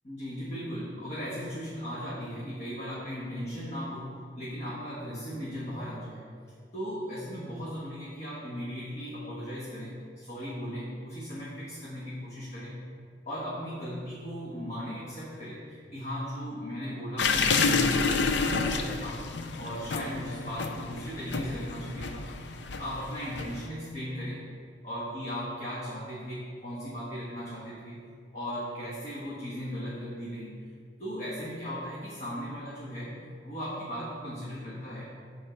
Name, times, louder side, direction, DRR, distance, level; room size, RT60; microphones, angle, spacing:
voice 1, 0.0-6.3 6.7-12.8 13.3-19.2 19.6-22.3 22.8-24.4 24.8-28.0 28.3-30.6 31.0-33.1 33.4-35.2, equal, 40° left, -7 dB, 1.3 m, -37 dB
sound 1, 17.2-23.7, left 4 dB, 70° left, 0.5 m, -29 dB
8.6 x 3.6 x 6.6 m, 2.1 s
head